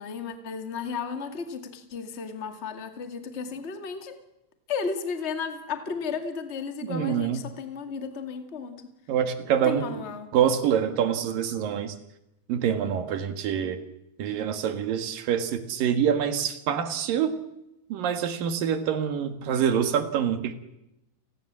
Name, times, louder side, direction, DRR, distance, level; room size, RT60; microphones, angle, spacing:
voice 1, 0.0-4.2 4.7-8.9 9.5-10.3, left 5 dB, 25° left, 7 dB, 1.4 m, -34 dB
voice 2, 6.9-7.4 9.1-9.9 10.3-11.9 12.5-13.8 14.2-17.3 17.9-20.5, right 8 dB, 65° right, 9 dB, 3.2 m, -26 dB
29.5 x 20.0 x 7.5 m, 0.90 s
omnidirectional pair, 4.6 m